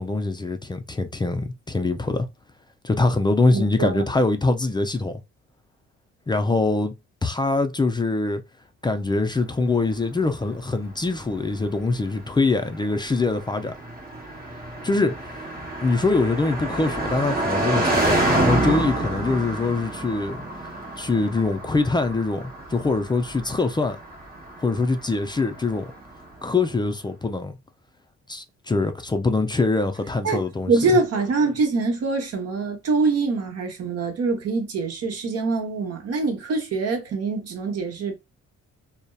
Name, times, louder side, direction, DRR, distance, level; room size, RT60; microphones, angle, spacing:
voice 1, 0.0-2.3 2.8-5.2 6.3-6.9 7.2-8.4 8.8-13.7 14.8-15.4 15.8-20.4 21.0-24.0 24.6-25.9 26.4-27.6 28.3-30.7, left 3 dB, 15° left, 0.3 m, -23 dB
voice 2, 3.5-4.0 30.2-38.1, right 3 dB, 55° right, 0.9 m, -24 dB
Car passing by, 9.9-26.3, right 1 dB, 30° right, 1.0 m, -29 dB
2.6 x 2.0 x 2.2 m
cardioid pair, 90°, 30 cm